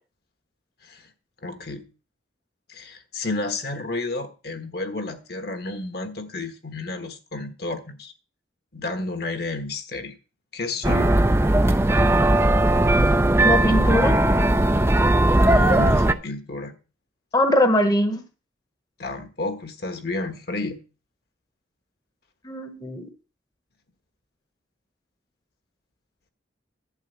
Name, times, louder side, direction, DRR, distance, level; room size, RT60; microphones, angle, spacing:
voice 1, 1.4-1.9 2.7-8.1 8.7-10.1 10.5-11.1 15.4-16.7 19.0-20.8, left 2 dB, 55° left, 1.4 m, -31 dB
sound 1, 10.8-16.1, right 1 dB, 15° right, 0.5 m, -18 dB
voice 2, 13.4-14.1 17.3-18.2 22.4-23.1, left 1 dB, 20° left, 1.0 m, -21 dB
11.5 x 4.7 x 8.1 m
head